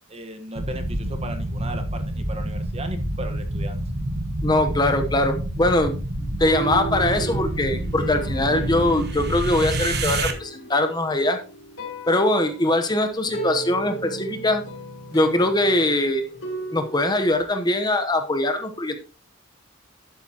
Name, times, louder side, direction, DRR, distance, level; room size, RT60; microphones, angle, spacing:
voice 1, 0.1-3.8, right 1 dB, 30° right, 6 dB, 1.3 m, -36 dB
sound 1, 0.6-10.3, right 1 dB, 55° right, 1.4 m, -28 dB
voice 2, 4.4-5.9 6.4-11.4 12.1-14.6 15.1-16.2 16.7-19.0, left 1 dB, 20° left, 6 dB, 1.0 m, -22 dB
sound 2, 6.2-17.4, right 4 dB, 80° left, 3.4 m, -36 dB
11.5 x 9.1 x 2.9 m, 0.35 s
head